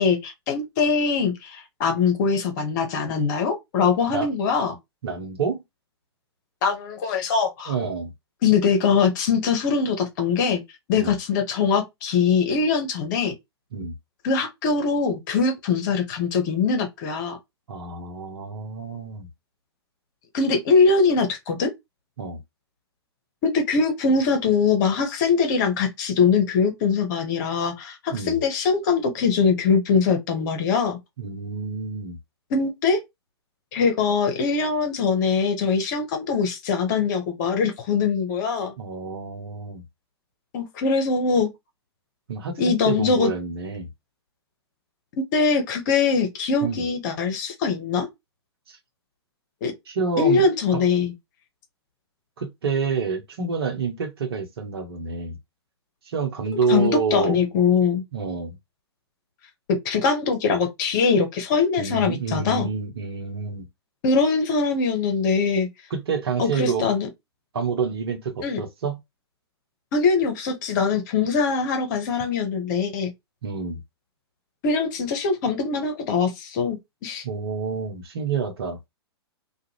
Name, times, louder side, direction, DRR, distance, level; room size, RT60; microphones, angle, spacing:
voice 1, 0.0-4.8 6.6-7.7 8.4-10.6 10.9-13.3 14.2-17.4 20.3-21.7 23.4-31.0 32.5-33.0 33.7-38.7 40.5-41.5 42.6-43.3 45.3-48.1 49.6-49.7 50.2-51.1 56.7-58.0 59.8-62.7 64.0-65.7 66.4-67.1 68.4-68.6 69.9-73.1 74.6-77.2, left 5 dB, 45° left, 1.0 m, -22 dB
voice 2, 5.0-5.6 7.7-8.1 11.0-11.1 13.7-13.9 17.7-19.3 22.2-22.4 28.1-28.4 31.2-32.2 38.8-39.8 42.3-43.9 46.6-46.8 48.7-48.8 49.9-50.5 50.7-50.8 52.4-55.4 56.0-57.4 58.1-58.6 61.8-63.7 65.9-66.9 67.5-69.0 73.4-73.8 77.2-78.8, right 5 dB, 65° right, 1.0 m, -28 dB
2.5 x 2.3 x 2.9 m
figure-of-eight pair, 110°, 14 cm